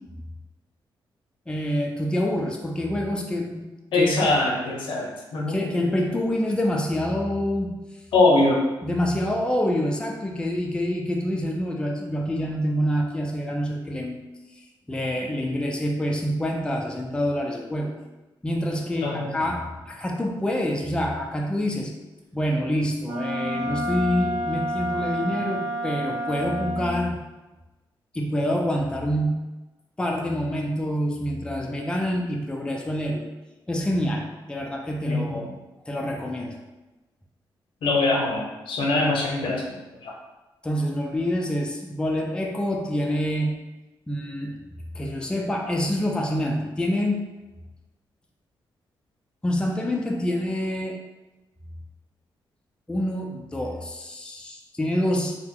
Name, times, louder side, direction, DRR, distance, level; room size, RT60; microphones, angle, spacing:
voice 1, 1.5-4.3 5.5-7.8 8.8-14.2 14.9-17.9 18.4-21.9 22.3-27.2 28.1-29.5 30.0-33.3 33.7-35.5 35.9-36.6 40.6-43.6 44.1-44.6 44.9-47.3 49.4-51.0 52.9-55.4, equal, 10° left, 0 dB, 0.4 m, -26 dB
voice 2, 3.9-5.6 8.1-8.7 19.0-19.3 35.1-35.4 37.8-39.8 40.0-40.1, left 2 dB, 85° left, -1 dB, 0.7 m, -22 dB
Wind instrument woodwind instrument, 23.0-27.1, right 1 dB, 55° right, 0.8 m, -29 dB
2.8 x 2.1 x 3.6 m, 1.1 s
cardioid pair, 85°, 8 cm